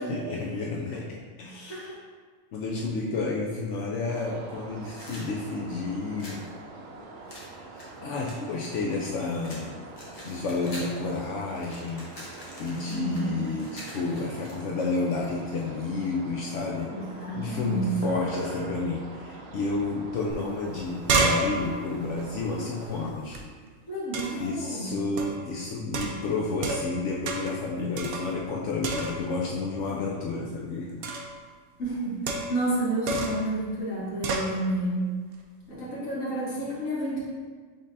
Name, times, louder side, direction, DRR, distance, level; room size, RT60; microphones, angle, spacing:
voice 1, 0.0-1.9 2.5-6.4 7.5-9.8 10.2-16.9 17.3-23.4 24.4-31.0, left 3 dB, 70° left, -2 dB, 0.8 m, -31 dB
voice 2, 1.4-1.9 12.9-13.5 16.9-18.0 23.9-24.9 31.8-35.1 35.7-37.2, right 1 dB, 85° left, -8 dB, 1.6 m, -30 dB
sound 1, 4.1-23.1, right 2 dB, 90° right, 1.0 m, -43 dB
sound 2, 4.8-6.5 7.3-9.1 9.4-11.0 11.3-14.9, left 1 dB, 30° left, 0.8 m, -45 dB
sound 3, 20.3-20.4 20.7-23.4 24.1-24.5 25.2-25.5 25.9-27.0 27.3-27.6 28.0-28.5 28.8-29.4 31.0-31.4 32.3-32.7 33.1-33.5 34.2-34.5, right 3 dB, 65° right, 0.6 m, -30 dB
5.1 x 3.8 x 2.6 m, 1.5 s
omnidirectional pair, 1.4 m